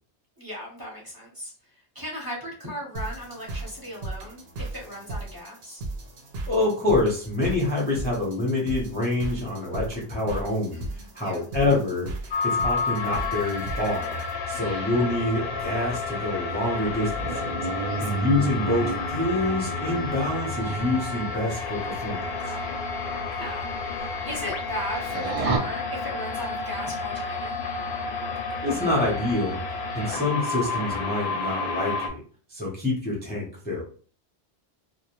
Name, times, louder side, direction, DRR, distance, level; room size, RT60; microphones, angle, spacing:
voice 1, 0.4-1.5 1.9-5.8 10.7-11.5 14.5-14.9 17.9-18.3 22.4-22.8 23.3-23.7 23.9-27.6 29.9-30.2, equal, 20° right, -5 dB, 0.8 m, -37 dB
sound 1, 2.9-14.3, right 2 dB, 70° right, 0.8 m, -37 dB
voice 2, 6.5-12.1 12.4-14.2 14.5-17.7 18.0-22.5 28.6-29.6 29.9-32.2 32.5-33.8, left 2 dB, 10° left, -5 dB, 0.5 m, -26 dB
sound 2, 12.3-32.1, left 4 dB, 70° left, 0.8 m, -31 dB
sound 3, 14.4-21.2 22.3-22.7 23.0-23.1 23.6-23.7 24.0-24.6 24.9-25.6, right 3 dB, 55° right, 0.4 m, -32 dB
2.3 x 2.1 x 2.9 m, 0.42 s
omnidirectional pair, 1.1 m